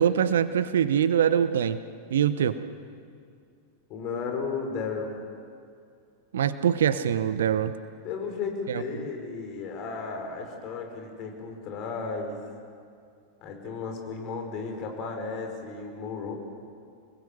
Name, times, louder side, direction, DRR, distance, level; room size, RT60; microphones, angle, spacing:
voice 1, 0.0-1.8 2.1-2.6 6.3-7.7 8.7-8.8, right 9 dB, 60° right, 14 dB, 0.9 m, -23 dB
voice 2, 3.9-5.1 8.0-12.4 13.4-16.4, left 4 dB, 40° left, 3 dB, 5.4 m, -34 dB
28.5 x 20.5 x 7.8 m, 2.3 s
figure-of-eight pair, 90°, 0 cm